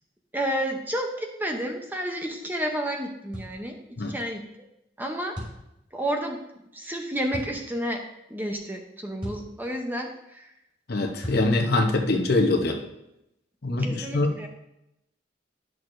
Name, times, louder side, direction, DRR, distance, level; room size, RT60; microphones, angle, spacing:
voice 1, 0.3-4.5 5.0-5.4 5.9-6.4 6.7-10.5 13.7-14.5, equal, 10° right, 2 dB, 0.7 m, -31 dB
sound 1, 3.3-3.6 5.4-5.6 7.3-7.5 9.2-9.5 11.2-11.5, equal, 25° right, 3.0 m, -35 dB
voice 2, 10.9-12.8 13.6-14.3, left 2 dB, 55° left, 4 dB, 0.9 m, -23 dB
10.5 x 6.2 x 2.6 m, 0.85 s
head